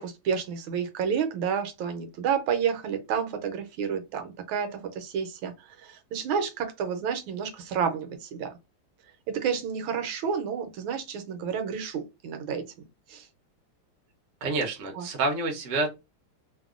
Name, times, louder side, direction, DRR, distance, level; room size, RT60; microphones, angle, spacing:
voice 1, 0.0-5.5 5.8-8.5 9.3-12.6 13.1-13.3 14.9-15.1, right 7 dB, 80° right, 1.4 m, -30 dB
voice 2, 14.4-15.9, right 3 dB, 60° right, 0.8 m, -28 dB
3.4 x 2.2 x 2.3 m
omnidirectional pair, 2.3 m